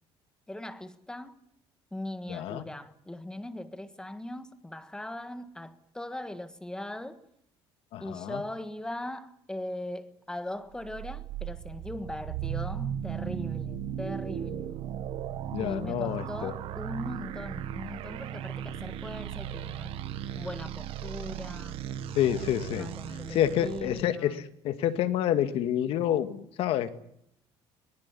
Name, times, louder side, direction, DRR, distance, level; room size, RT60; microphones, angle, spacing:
voice 1, 0.5-1.4 1.9-7.2 8.0-14.8 15.6-19.9 20.4-21.8 22.7-24.5, left 1 dB, 5° left, 1.5 m, -40 dB
voice 2, 2.3-2.6 7.9-8.4 15.5-16.5 22.2-22.9 23.3-24.4 24.6-26.9, left 11 dB, 65° left, 2.0 m, -28 dB
sound 1, 10.8-24.0, right 10 dB, 65° right, 1.7 m, -37 dB
22.0 x 19.5 x 10.0 m
cardioid pair, 145°, 10 cm